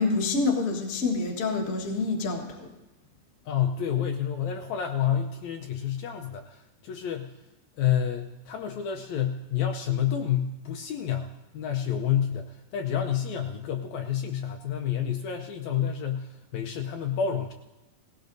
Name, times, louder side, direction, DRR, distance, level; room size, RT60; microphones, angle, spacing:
voice 1, 0.0-2.7, left 3 dB, 45° left, 0 dB, 1.1 m, -27 dB
voice 2, 3.5-7.5 7.8-17.5, left 9 dB, 75° left, 3 dB, 1.8 m, -29 dB
18.5 x 16.5 x 2.6 m, 1.0 s
omnidirectional pair, 3.7 m